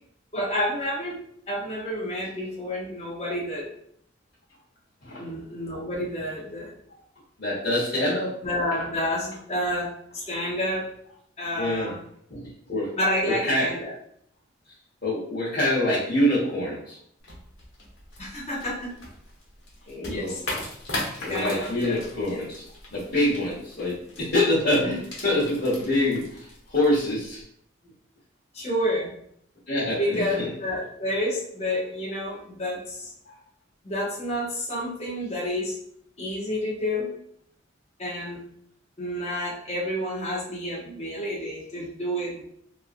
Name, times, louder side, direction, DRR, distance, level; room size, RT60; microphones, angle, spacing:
voice 1, 0.3-1.2 1.5-3.7 5.2-6.7 8.4-10.9 11.4-12.0 13.0-13.9 18.2-18.9 20.0-20.4 21.3-22.0 24.9-25.0 28.5-29.1 30.0-33.1 33.8-35.8 36.2-37.1 38.0-38.4 39.0-42.4, left 1 dB, 35° left, -4 dB, 0.7 m, -29 dB
voice 2, 7.4-8.4 11.5-11.9 12.3-12.9 13.2-13.7 15.0-17.0 19.9-20.4 21.2-22.6 22.9-27.4 29.7-30.5 33.3-33.4, left 1 dB, 50° left, -12 dB, 1.1 m, -25 dB
sound 1, 17.2-27.4, left 1 dB, 80° left, 1.0 m, -39 dB
3.1 x 2.4 x 2.4 m, 0.68 s
head